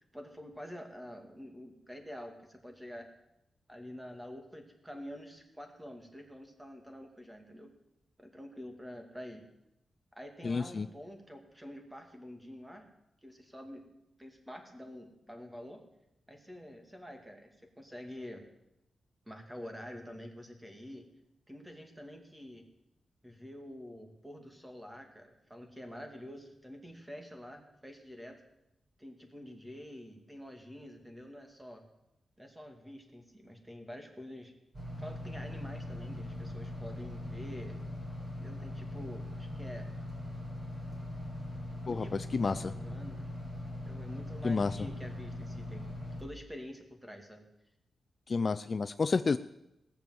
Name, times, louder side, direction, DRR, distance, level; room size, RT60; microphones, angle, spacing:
voice 1, 0.1-3.1 3.7-7.7 8.2-9.5 10.1-12.9 13.2-13.9 14.2-15.8 16.3-18.4 19.3-21.1 21.5-22.6 23.2-28.4 29.0-31.8 32.4-34.5 35.0-37.8 38.4-39.9 41.8-43.3 43.9-45.9 46.2-47.5, equal, 10° right, 4 dB, 2.4 m, -47 dB
voice 2, 10.4-10.9 41.9-42.1 42.3-42.7 44.4-44.7 48.3-49.4, left 4 dB, 40° left, 11 dB, 0.4 m, -30 dB
sound 1, 34.7-46.2, left 1 dB, 25° right, 4.4 m, -41 dB
18.0 x 6.9 x 7.8 m, 0.86 s
cardioid pair, 100°, 0 cm